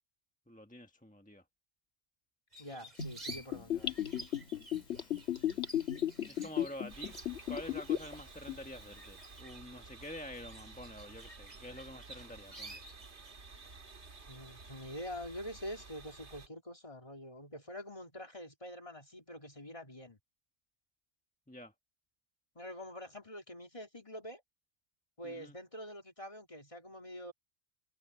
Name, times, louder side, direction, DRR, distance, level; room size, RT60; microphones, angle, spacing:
voice 1, 0.5-1.4 6.2-7.1 7.5-12.8 21.5-21.7 25.2-25.5, equal, 5° left, 1.2 m, -48 dB
sound 1, 2.5-13.3, right 2 dB, 40° right, 2.6 m, -53 dB
voice 2, 2.6-4.1 14.3-20.2 22.5-24.4 25.2-27.3, equal, 30° left, 3.1 m, -46 dB
Gurgling / Bathtub (filling or washing), 3.0-8.1 8.5-8.6, left 10 dB, 80° left, 1.8 m, -35 dB
sound 2, 6.9-16.5, right 4 dB, 80° right, 2.3 m, -53 dB
omnidirectional pair, 1.1 m